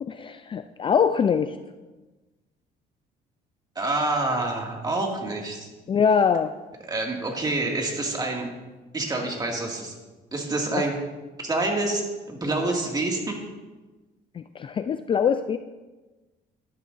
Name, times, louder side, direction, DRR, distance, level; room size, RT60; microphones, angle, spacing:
voice 1, 0.0-1.6 5.9-6.5 14.3-15.6, left 7 dB, 30° left, 10 dB, 0.3 m, -23 dB
voice 2, 3.8-5.7 6.8-8.5 8.9-9.9 10.3-10.9 11.4-13.4, right 2 dB, 25° right, 0 dB, 2.1 m, -27 dB
12.5 x 11.0 x 2.6 m, 1.2 s
cardioid pair, 110°, 17 cm